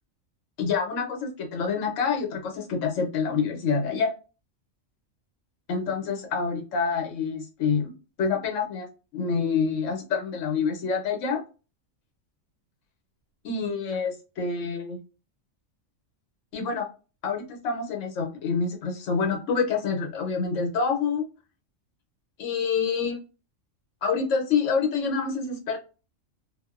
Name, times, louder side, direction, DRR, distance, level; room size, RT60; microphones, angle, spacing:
voice 1, 0.6-4.1 5.7-7.9 8.2-8.9 9.1-11.4 13.4-15.0 16.5-16.9 17.2-21.3 22.4-23.2 24.0-25.8, left 5 dB, 70° left, 2 dB, 1.1 m, -27 dB
2.6 x 2.0 x 2.3 m, 0.33 s
omnidirectional pair, 1.3 m